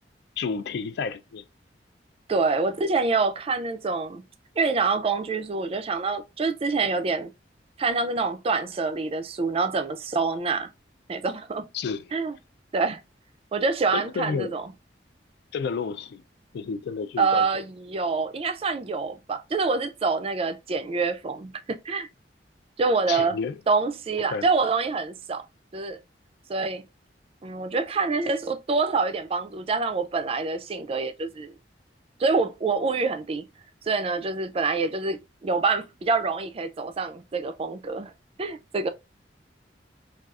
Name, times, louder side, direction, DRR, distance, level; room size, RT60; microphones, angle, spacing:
voice 1, 0.4-1.4 11.7-12.2 13.9-14.5 15.5-16.2 16.5-17.5 23.1-23.6 24.3-24.5, left 5 dB, 65° left, 0.3 m, -30 dB
voice 2, 2.3-4.3 4.6-7.3 7.8-10.7 11.1-11.7 12.1-12.4 12.7-13.0 13.5-14.7 17.2-22.1 22.8-23.4 23.7-25.4 25.7-26.0 26.5-26.9 27.4-31.5 32.2-33.5 33.8-38.1 38.4-38.9, right 4 dB, 35° right, 0.4 m, -26 dB
3.6 x 2.3 x 2.3 m
head